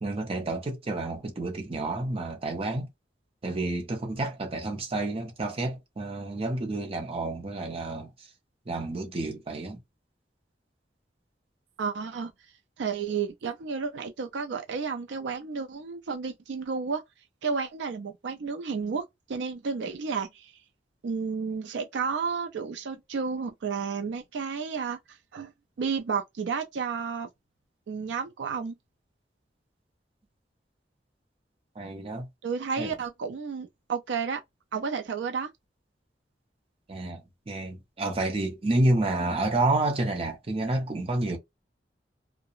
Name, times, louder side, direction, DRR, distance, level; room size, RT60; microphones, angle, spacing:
voice 1, 0.0-2.9 3.4-8.1 8.7-9.8 31.8-32.3 32.8-32.9 36.9-41.4, right 2 dB, 35° right, 0.6 m, -29 dB
voice 2, 11.8-12.3 12.8-17.0 17.4-20.5 21.0-25.5 25.8-27.3 27.9-28.7 32.4-34.4 34.7-35.5, right 5 dB, 80° right, 0.4 m, -32 dB
2.7 x 2.0 x 2.4 m
head